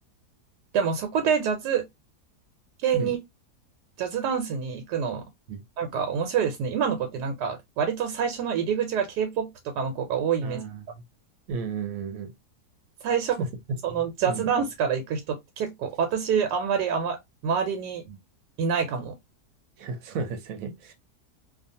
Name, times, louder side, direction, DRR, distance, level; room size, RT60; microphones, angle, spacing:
voice 1, 0.7-1.8 2.8-3.2 4.0-5.2 5.8-10.6 13.0-13.4 13.8-17.2 17.4-18.0 18.6-19.1, right 7 dB, 90° right, 1.2 m, -26 dB
voice 2, 10.4-11.0 11.5-12.3 13.4-13.5 13.9-14.5 18.1-18.2 19.8-20.9, right 4 dB, 70° right, 0.9 m, -33 dB
2.4 x 2.4 x 2.6 m
omnidirectional pair, 1.7 m